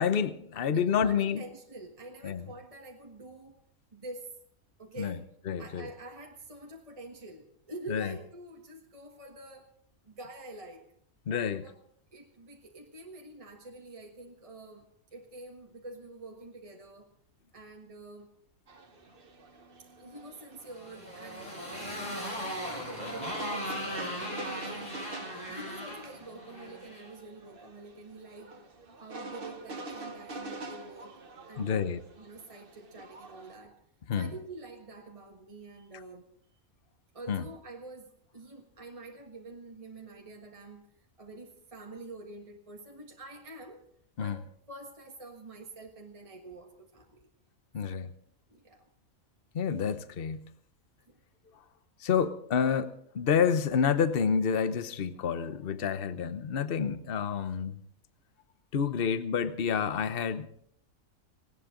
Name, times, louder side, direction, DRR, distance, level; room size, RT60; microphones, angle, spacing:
voice 1, 0.0-1.4 2.2-2.4 5.0-5.2 5.5-5.9 7.9-8.1 11.3-11.7 31.6-32.0 34.1-34.3 37.3-37.4 44.2-44.4 47.7-48.1 49.5-50.5 52.0-57.8 58.7-60.5, left 7 dB, 45° left, 1.0 m, -29 dB
voice 2, 0.7-3.6 3.9-4.3 4.8-5.3 5.6-9.7 10.0-10.8 11.6-11.7 12.1-17.1 17.5-18.3 19.8-21.5 22.1-25.1 25.5-28.7 29.0-31.2 31.5-33.8 34.1-36.2 37.1-43.8 44.2-47.3 47.8-48.0 48.5-48.8 52.2-52.3, right 2 dB, 25° right, 1.6 m, -47 dB
sound 1, 18.7-33.6, right 3 dB, 40° right, 1.4 m, -46 dB
Motorcycle, 20.7-27.1, equal, 30° left, 5.9 m, -38 dB
18.5 x 18.5 x 3.8 m
omnidirectional pair, 1.4 m